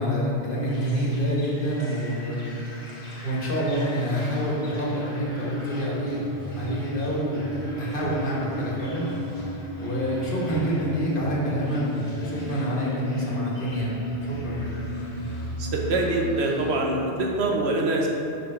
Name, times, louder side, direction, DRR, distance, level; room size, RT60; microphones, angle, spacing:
voice 1, 0.0-2.6 3.2-6.2 6.5-7.5 7.8-9.1 9.8-14.7, equal, 50° left, -4 dB, 1.6 m, -27 dB
sound 1, 0.7-16.7, left 1 dB, 85° left, 1.4 m, -35 dB
voice 2, 15.6-18.1, right 2 dB, 75° right, 0 dB, 1.2 m, -24 dB
6.1 x 3.9 x 5.8 m, 2.7 s
omnidirectional pair, 1.1 m